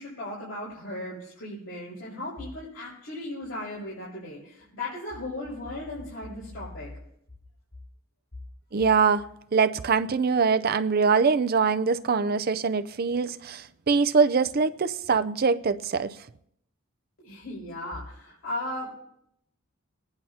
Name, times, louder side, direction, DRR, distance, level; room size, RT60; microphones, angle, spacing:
voice 1, 0.0-6.9 17.2-18.9, left 1 dB, 70° left, 5.7 m, -36 dB
voice 2, 8.7-9.2 9.5-16.2, right 5 dB, 45° right, 0.5 m, -23 dB
23.0 x 10.5 x 2.8 m
head